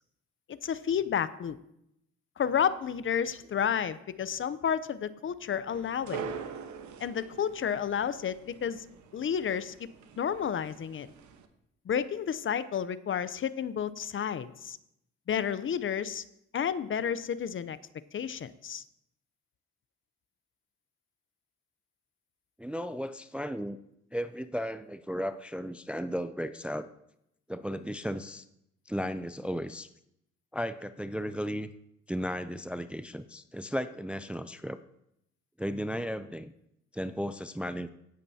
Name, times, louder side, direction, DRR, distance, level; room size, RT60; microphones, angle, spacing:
voice 1, 0.5-1.6 2.4-6.2 7.0-8.8 9.1-9.9 10.2-11.1 11.9-14.8 15.3-16.2 16.5-17.8 18.1-18.8, left 8 dB, 40° left, 15 dB, 0.6 m, -31 dB
sound 1, 5.7-11.5, right 6 dB, 70° right, 1.1 m, -44 dB
voice 2, 22.6-23.8 24.1-26.9 27.5-28.4 28.9-29.9 30.5-31.7 32.1-34.8 35.6-36.5 36.9-37.9, equal, 5° right, 11 dB, 0.4 m, -35 dB
17.0 x 8.8 x 2.8 m, 0.79 s
cardioid pair, 90°, 30 cm